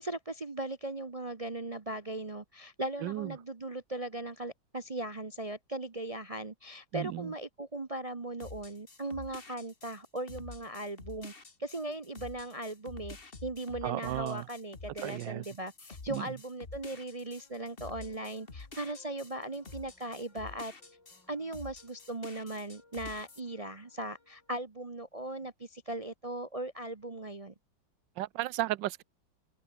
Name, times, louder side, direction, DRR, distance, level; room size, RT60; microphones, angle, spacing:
voice 1, 0.0-11.3 11.6-20.7 21.3-27.5, right 1 dB, 35° right, 0.6 m, -38 dB
voice 2, 6.9-7.3 13.8-14.4 15.0-15.4 16.1-16.2 28.2-29.0, right 15 dB, 75° right, 1.3 m, -34 dB
sound 1, 8.4-21.2 21.5-23.4, left 3 dB, 30° left, 2.2 m, -49 dB
sound 2, 16.9-24.6, left 3 dB, 70° left, 6.7 m, -66 dB
open air
omnidirectional pair, 2.1 m